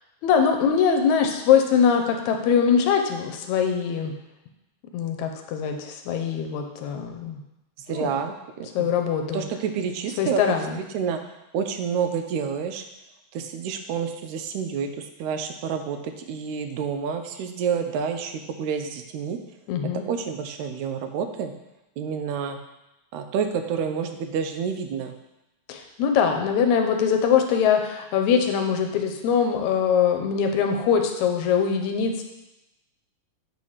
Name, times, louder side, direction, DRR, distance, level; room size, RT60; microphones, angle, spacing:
voice 1, 0.2-4.1 4.9-7.4 7.9-8.1 8.8-9.4 10.2-10.8 19.7-20.0 25.7-32.2, left 7 dB, 80° left, 4 dB, 2.0 m, -22 dB
voice 2, 7.9-8.9 9.3-11.2 11.5-12.8 13.3-19.4 20.1-21.5 22.0-22.6 23.1-25.1, right 6 dB, 85° right, 7 dB, 2.0 m, -29 dB
7.2 x 3.3 x 5.5 m, 0.95 s
omnidirectional pair, 3.3 m